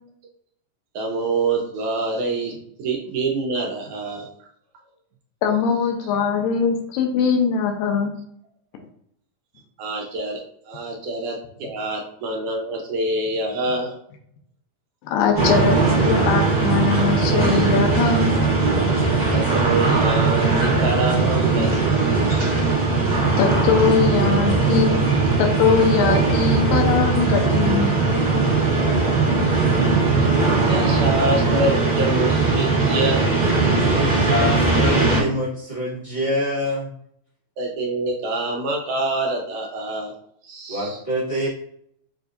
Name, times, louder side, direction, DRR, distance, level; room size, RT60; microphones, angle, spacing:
voice 1, 1.0-2.5 2.8-4.3 6.0-6.1 9.8-10.4 10.7-13.9 19.3-22.3 29.8-30.0 30.6-33.3 37.6-40.1 40.4-41.0, right 2 dB, 75° right, 0 dB, 1.9 m, -26 dB
voice 2, 5.4-8.1 15.1-15.8 16.0-18.3 23.4-25.0 25.4-27.9 28.3-28.4, left 6 dB, 85° left, 3 dB, 2.4 m, -21 dB
sound 1, 15.3-35.2, right 3 dB, 50° right, 0.4 m, -19 dB
voice 3, 33.9-36.9 40.7-41.5, left 1 dB, 45° left, -13 dB, 0.4 m, -25 dB
6.8 x 2.7 x 2.5 m, 0.70 s
omnidirectional pair, 3.9 m